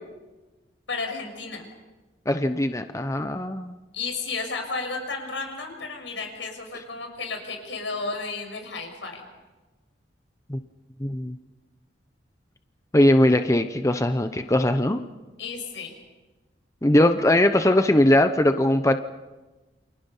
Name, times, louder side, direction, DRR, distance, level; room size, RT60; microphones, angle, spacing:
voice 1, 0.9-1.7 3.9-9.2 15.4-15.9, left 4 dB, 80° left, 4 dB, 6.5 m, -33 dB
voice 2, 2.3-3.8 10.5-10.6 11.0-11.4 12.9-15.0 16.8-19.0, left 1 dB, 15° left, 8 dB, 0.8 m, -20 dB
29.0 x 27.5 x 5.6 m, 1.2 s
head